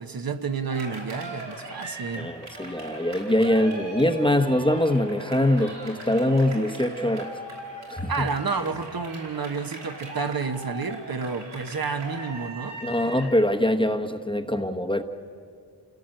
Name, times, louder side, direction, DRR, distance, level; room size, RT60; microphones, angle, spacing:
voice 1, 0.0-2.3 8.1-12.8, right 5 dB, 55° right, 7 dB, 1.1 m, -30 dB
Cheering, 0.7-13.4, right 2 dB, 85° right, 5.0 m, -39 dB
voice 2, 2.2-7.3 7.9-8.3 12.8-15.0, left 1 dB, 10° left, 6 dB, 1.1 m, -23 dB
28.5 x 17.0 x 7.8 m, 2.2 s
wide cardioid pair, 110°, 42 cm